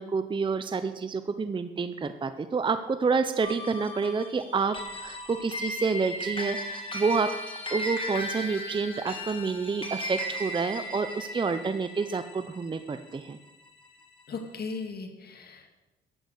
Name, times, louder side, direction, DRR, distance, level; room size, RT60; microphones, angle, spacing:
voice 1, 0.0-7.3 7.7-13.4, right 4 dB, 25° right, 11 dB, 0.6 m, -29 dB
sound 1, 3.4-14.0, equal, 25° left, 2.4 m, -37 dB
voice 2, 14.3-15.8, left 4 dB, 50° left, 5 dB, 1.9 m, -37 dB
11.5 x 8.7 x 6.5 m, 1.1 s
cardioid pair, 90°, 20 cm